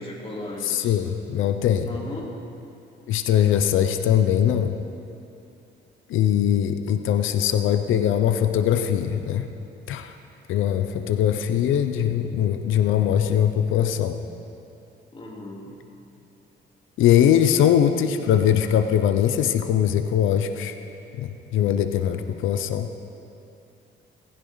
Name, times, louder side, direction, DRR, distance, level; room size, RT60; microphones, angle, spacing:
voice 1, 0.0-1.0 1.9-2.3 15.1-15.8, left 1 dB, 30° left, -4 dB, 3.5 m, -36 dB
voice 2, 0.6-1.9 3.1-4.8 6.1-9.5 9.9-10.1 10.5-14.2 17.0-20.7 21.2-22.9, left 10 dB, 85° left, 8 dB, 0.7 m, -21 dB
19.5 x 15.0 x 4.0 m, 2.8 s
cardioid pair, 90°, 20 cm